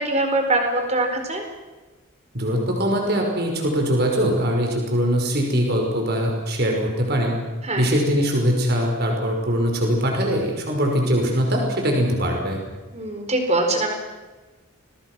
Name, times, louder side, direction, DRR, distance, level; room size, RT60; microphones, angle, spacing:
voice 1, 0.0-1.4 7.7-7.8 12.9-13.9, right 2 dB, 30° right, 4 dB, 4.4 m, -22 dB
voice 2, 2.3-7.4 7.8-12.6, equal, 50° right, 1 dB, 5.4 m, -22 dB
29.5 x 23.5 x 6.3 m, 1.2 s
head